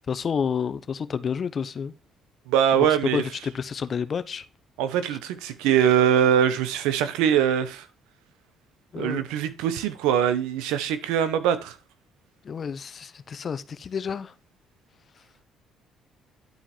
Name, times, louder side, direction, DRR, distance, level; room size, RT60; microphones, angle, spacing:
voice 1, 0.1-1.9 2.7-4.5 8.9-9.2 12.4-14.3, left 6 dB, 45° left, 0.8 m, -29 dB
voice 2, 2.5-3.2 4.8-7.8 9.0-11.7, right 9 dB, 90° right, 1.1 m, -22 dB
11.0 x 4.6 x 4.4 m
supercardioid pair, 80°, 0 cm